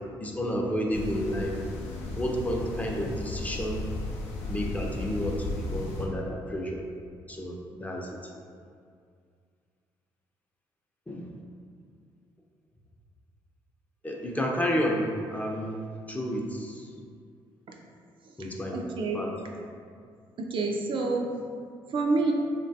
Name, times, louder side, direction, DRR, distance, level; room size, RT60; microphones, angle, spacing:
voice 1, 0.2-1.6 2.2-3.8 4.5-6.8 7.3-8.1 11.1-11.3 14.0-15.0 15.3-15.8 16.1-17.0 18.4-18.8 19.1-19.3, equal, 15° left, -1 dB, 0.4 m, -31 dB
sound 1, 0.9-6.1, left 2 dB, 80° left, 0.4 m, -35 dB
voice 2, 18.7-19.2 20.4-21.3 21.9-22.3, right 3 dB, 50° right, 0 dB, 0.4 m, -28 dB
3.1 x 2.2 x 2.6 m, 2.2 s
supercardioid pair, 60°, 11 cm